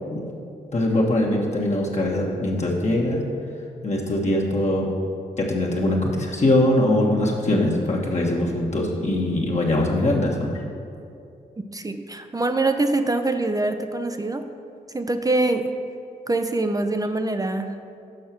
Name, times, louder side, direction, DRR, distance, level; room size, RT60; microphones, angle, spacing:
voice 1, 0.7-3.2 3.8-4.9 5.4-10.6, left 1 dB, 40° left, -3 dB, 1.3 m, -22 dB
voice 2, 11.7-14.5 14.9-15.7 16.3-17.7, right 2 dB, 20° right, 7 dB, 0.5 m, -24 dB
6.5 x 5.5 x 5.9 m, 2.5 s
supercardioid pair, 50°, 17 cm